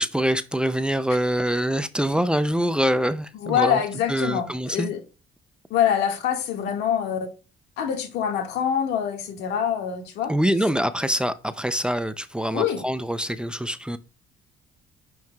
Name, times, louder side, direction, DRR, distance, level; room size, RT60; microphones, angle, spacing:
voice 1, 0.0-3.8 4.1-4.9 10.3-14.0, equal, 5° right, 0.5 m, -24 dB
voice 2, 3.4-5.0 5.7-7.3 7.8-10.3 12.5-12.8, left 9 dB, 85° left, 1.8 m, -25 dB
10.5 x 4.7 x 2.3 m
cardioid pair, 110°, 17 cm